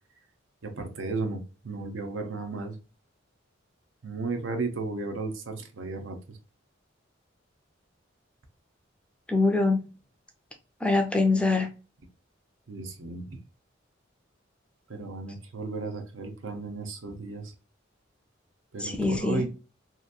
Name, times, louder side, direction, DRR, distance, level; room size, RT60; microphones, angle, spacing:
voice 1, 0.6-2.8 4.0-6.4 12.7-13.4 14.9-17.5 18.7-19.5, right 3 dB, 80° right, 0.7 m, -34 dB
voice 2, 9.3-9.8 10.8-11.7 18.8-19.5, left 3 dB, 5° left, 0.4 m, -24 dB
2.8 x 2.6 x 2.3 m
head